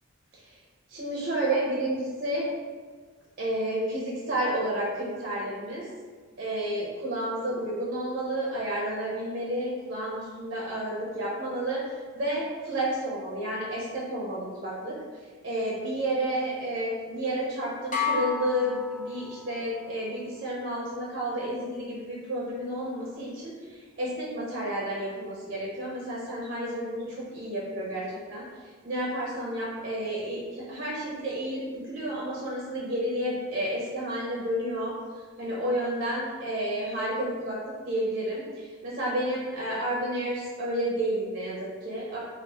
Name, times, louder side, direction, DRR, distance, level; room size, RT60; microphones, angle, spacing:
voice 1, 0.9-2.5 3.4-5.9 6.4-11.8 12.1-14.9 15.4-28.4 28.8-34.9 35.4-37.6 37.9-42.2, right 1 dB, 40° right, -5 dB, 0.6 m, -31 dB
sound 1, 17.9-19.7, left 5 dB, 35° left, 0.6 m, -31 dB
3.3 x 2.4 x 3.1 m, 1.5 s
head